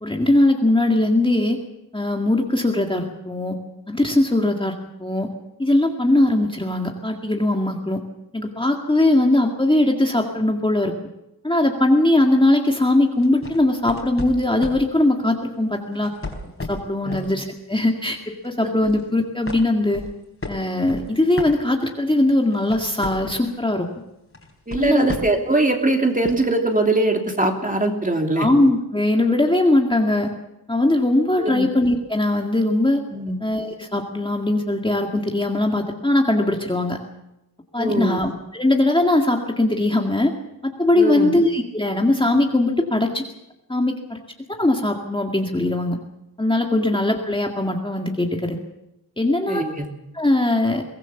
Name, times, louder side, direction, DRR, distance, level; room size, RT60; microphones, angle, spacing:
voice 1, 0.0-1.6 1.9-3.6 3.9-4.7 5.0-5.3 5.6-8.0 8.3-10.9 11.4-16.1 16.7-20.0 20.5-23.9 24.8-25.1 28.4-30.3 30.7-33.0 33.4-37.0 37.7-40.3 40.6-43.2 43.7-44.2 44.5-46.0 46.4-48.6 49.2-49.6 50.1-50.8, left 1 dB, 15° left, 1 dB, 2.0 m, -20 dB
sound 1, 13.2-14.9 15.9-17.3 17.7-18.0 18.4-19.1 19.5-22.1 22.4-23.6 24.3-25.5 26.2-26.3, left 2 dB, 35° left, 4.2 m, -34 dB
voice 2, 24.7-28.5 31.4-31.7 33.1-33.4 37.8-38.2 40.9-41.3 49.5-49.8, right 2 dB, 20° right, 3 dB, 3.0 m, -21 dB
23.0 x 19.0 x 7.2 m, 0.88 s
wide cardioid pair, 140°, 39 cm